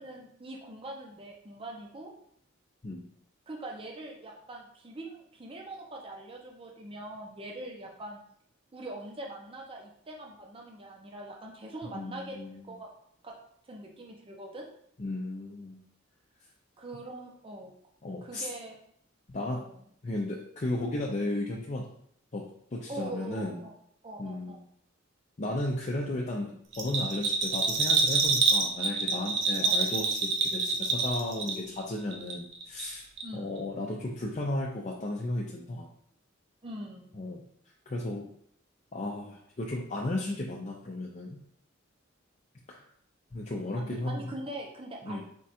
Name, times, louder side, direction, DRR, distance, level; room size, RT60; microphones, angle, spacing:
voice 1, 0.0-2.1 3.5-8.2 8.7-12.9 13.2-13.3 13.7-14.7 16.8-17.7 18.2-18.8 19.5-19.8 22.9-23.7 24.0-24.6 29.6-29.8 33.2-33.5 36.6-37.1 43.7-45.2, right 1 dB, 25° right, 0 dB, 0.7 m, -42 dB
voice 2, 11.8-12.6 15.0-15.8 18.0-18.5 19.3-19.6 20.0-21.8 22.3-22.4 22.7-23.6 24.2-24.6 25.4-33.1 33.3-35.9 37.2-37.4 37.9-38.3 38.9-41.4 42.7-42.8 43.3-44.3 45.0-45.2, left 1 dB, 35° left, -2 dB, 0.5 m, -34 dB
Bell, 26.7-31.8 32.1-32.9 33.2-33.3, right 4 dB, 65° right, 0.7 m, -27 dB
4.4 x 2.5 x 4.2 m, 0.66 s
head